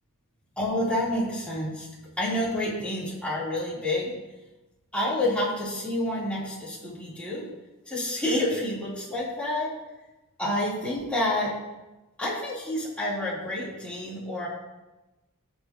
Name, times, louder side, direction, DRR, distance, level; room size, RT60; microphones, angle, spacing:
voice 1, 0.6-1.9 2.2-4.1 4.9-7.5 7.8-9.7 10.4-11.5 12.2-14.5, left 1 dB, 5° left, -9 dB, 4.1 m, -28 dB
18.5 x 6.3 x 3.2 m, 1.1 s
head